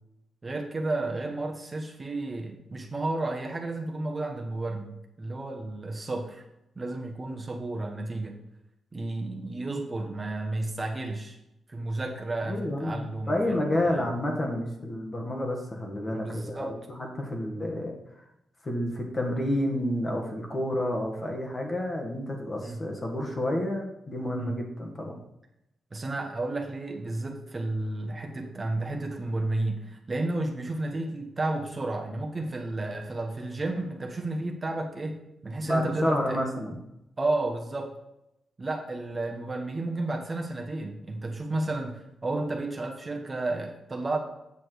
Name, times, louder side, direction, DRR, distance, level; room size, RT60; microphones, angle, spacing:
voice 1, 0.4-6.4 6.7-8.4 8.9-11.4 11.7-14.1 16.1-16.8 22.6-22.8 24.4-24.6 25.9-36.4 37.2-37.9 38.6-44.2, right 2 dB, 25° right, 2 dB, 1.3 m, -32 dB
voice 2, 12.5-16.7 17.0-18.0 18.6-25.2 35.6-36.8, left 1 dB, 30° left, 1 dB, 1.9 m, -30 dB
8.5 x 6.1 x 4.7 m, 0.86 s
cardioid pair, 95°, 0 cm